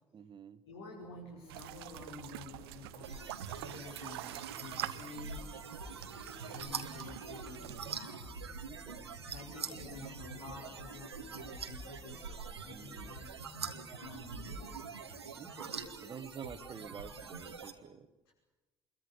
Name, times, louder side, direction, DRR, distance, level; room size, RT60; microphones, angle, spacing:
voice 1, 0.1-0.6 8.6-9.2 12.7-13.1 15.4-18.1, right 7 dB, 35° right, 12 dB, 1.7 m, -49 dB
voice 2, 0.6-3.3 3.5-5.4 6.5-8.7 9.0-12.3 12.6-13.3 14.0-14.8 18.3-18.4, left 3 dB, 75° left, -3 dB, 5.7 m, -50 dB
sound 1, 1.0-15.5, left 2 dB, 45° left, 5.3 m, -62 dB
sound 2, 1.5-8.0, right 16 dB, 70° right, 0.8 m, -46 dB
sound 3, 3.0-17.7, right 5 dB, 85° right, 1.6 m, -44 dB
27.0 x 22.5 x 8.3 m, 1.1 s
figure-of-eight pair, 55°, 13 cm